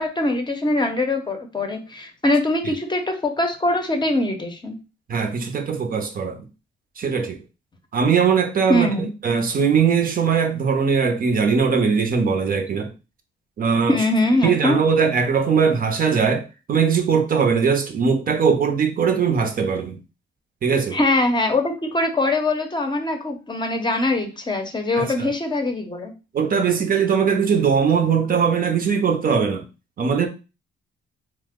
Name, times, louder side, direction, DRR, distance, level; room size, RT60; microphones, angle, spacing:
voice 1, 0.0-4.8 8.7-9.1 13.9-14.8 20.9-26.1, left 2 dB, 20° left, 0.7 m, -22 dB
voice 2, 5.1-6.5 7.0-7.4 7.9-8.9 9.2-12.9 13.6-14.0 14.4-20.0 20.6-21.0 24.9-25.3 26.3-29.7 30.0-30.3, right 6 dB, 45° right, 0.6 m, -20 dB
2.8 x 2.0 x 3.5 m
cardioid pair, 90°, 20 cm